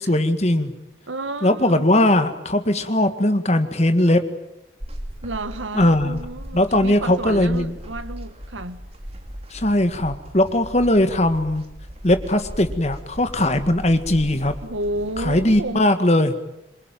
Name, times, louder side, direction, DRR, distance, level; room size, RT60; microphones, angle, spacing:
voice 1, 0.1-0.7 1.4-4.2 5.7-6.2 6.5-7.7 9.5-11.6 12.0-14.5 15.2-16.3, left 1 dB, 35° left, 1.8 m, -19 dB
voice 2, 1.1-1.9 5.2-8.8 14.6-15.8, right 2 dB, 85° right, 1.8 m, -31 dB
sound 1, 4.8-15.7, equal, 30° right, 2.9 m, -37 dB
27.0 x 24.0 x 9.2 m
head